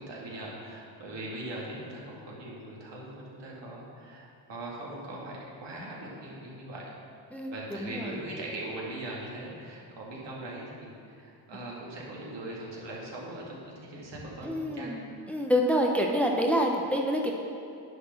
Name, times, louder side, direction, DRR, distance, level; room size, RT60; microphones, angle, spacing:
voice 1, 0.0-6.9 7.5-15.0, right 1 dB, 65° right, -4 dB, 2.2 m, -40 dB
voice 2, 7.8-8.1 14.4-17.3, equal, 5° left, 1 dB, 0.8 m, -27 dB
10.0 x 4.2 x 5.9 m, 2.6 s
cardioid pair, 65°, 46 cm